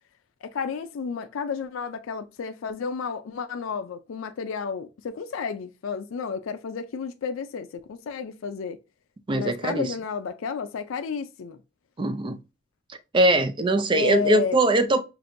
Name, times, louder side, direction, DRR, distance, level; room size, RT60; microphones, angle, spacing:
voice 1, 0.4-8.8 9.3-11.6 13.9-14.6, left 5 dB, 85° left, 0.4 m, -31 dB
voice 2, 9.3-9.9 12.0-12.4 13.1-15.0, right 1 dB, 25° right, 0.4 m, -21 dB
5.9 x 2.5 x 2.6 m
head